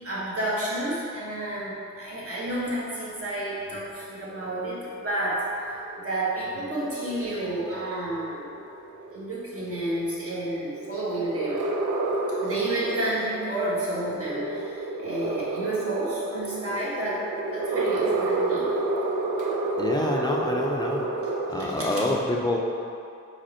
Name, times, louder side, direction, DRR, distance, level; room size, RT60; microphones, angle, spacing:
voice 1, 0.0-8.5 9.1-11.6 12.4-17.2 17.5-18.7 21.9-22.0, right 1 dB, 45° right, -7 dB, 1.4 m, -30 dB
sound 1, 4.3-21.7, right 2 dB, 80° right, 0.5 m, -31 dB
voice 2, 19.8-21.1 21.5-22.6, left 1 dB, 15° left, -2 dB, 0.5 m, -26 dB
5.1 x 4.3 x 4.3 m, 2.6 s
wide cardioid pair, 130°, 31 cm